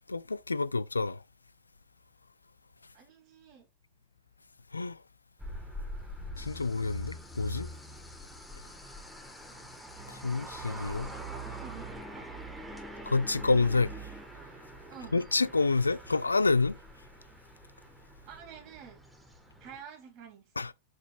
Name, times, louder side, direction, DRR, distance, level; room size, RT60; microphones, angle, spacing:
voice 1, 0.1-1.2 4.7-5.0 6.4-7.7 10.1-11.1 13.0-14.0 15.1-16.8 20.6-20.7, left 3 dB, 80° left, 0.4 m, -28 dB
voice 2, 2.9-3.7 10.8-12.3 14.9-15.2 18.3-19.0 19.6-20.5, right 8 dB, 40° right, 3.0 m, -49 dB
sound 1, 5.4-19.8, right 1 dB, 5° right, 1.8 m, -44 dB
sound 2, 6.4-14.3, left 4 dB, 10° left, 0.7 m, -53 dB
7.8 x 5.1 x 2.6 m
figure-of-eight pair, 90°, 0 cm